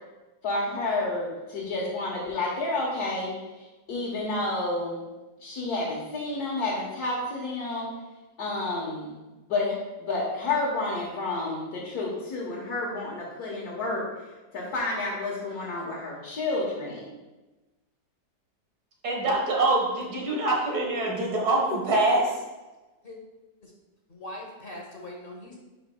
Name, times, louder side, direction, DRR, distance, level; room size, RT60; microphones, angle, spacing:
voice 1, 0.4-5.0 5.4-7.9 8.4-9.2 9.5-14.0 14.5-17.1, left 2 dB, 70° left, -4 dB, 1.7 m, -30 dB
voice 2, 19.0-22.3, right 2 dB, 70° right, -1 dB, 2.0 m, -24 dB
voice 3, 24.1-25.6, left 1 dB, 40° left, 0 dB, 0.9 m, -41 dB
9.7 x 5.3 x 2.2 m, 1.1 s
omnidirectional pair, 1.7 m